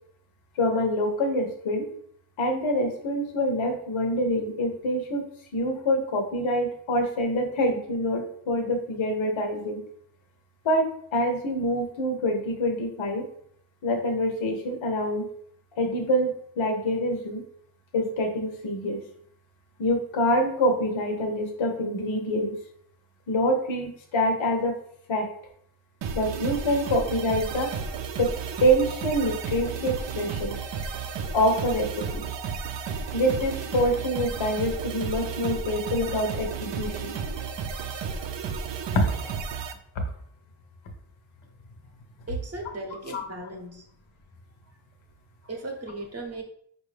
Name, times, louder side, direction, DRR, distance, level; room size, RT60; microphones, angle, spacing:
voice 1, 0.6-1.9 2.4-5.2 5.5-9.8 10.6-13.3 13.8-15.2 15.8-16.3 16.6-17.4 17.9-19.0 19.8-22.5 23.3-24.7 25.1-25.3 26.1-27.7 28.2-28.3 28.6-30.6 31.3-32.2 33.1-37.2 38.9-39.3 43.1-43.2, equal, 65° left, 3 dB, 0.9 m, -26 dB
sound 1, 26.0-39.7, right 5 dB, 60° right, 0.5 m, -33 dB
voice 2, 42.3-43.8 45.4-46.4, right 2 dB, 30° right, 3 dB, 0.8 m, -37 dB
5.2 x 2.7 x 3.2 m, 0.64 s
wide cardioid pair, 135°, 50 cm